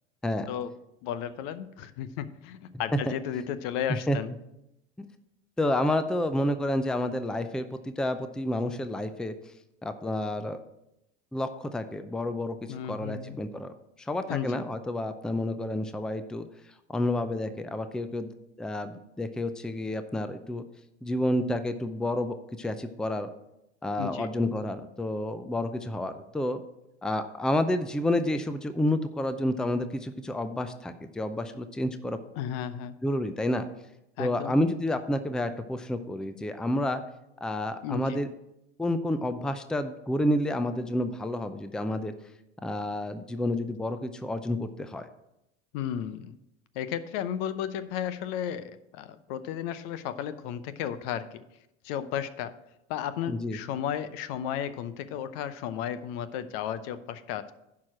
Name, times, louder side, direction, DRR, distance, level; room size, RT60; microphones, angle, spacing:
voice 1, 1.0-4.3 12.7-13.4 14.3-14.6 24.0-24.3 32.4-33.0 34.2-34.5 37.8-38.2 45.7-46.3 46.7-51.4 51.8-52.5 52.9-57.5, left 9 dB, 60° left, 13 dB, 0.8 m, -34 dB
voice 2, 5.6-9.3 9.8-10.6 11.3-12.6 12.9-13.7 14.1-16.5 16.9-18.3 18.6-20.6 21.0-23.3 23.8-26.6 27.0-32.2 33.0-33.7 34.2-37.0 37.4-38.3 38.8-42.1 42.6-45.1 53.3-53.6, left 1 dB, ahead, 10 dB, 0.5 m, -29 dB
11.0 x 4.8 x 6.0 m, 0.86 s
hypercardioid pair, 85°, 35 cm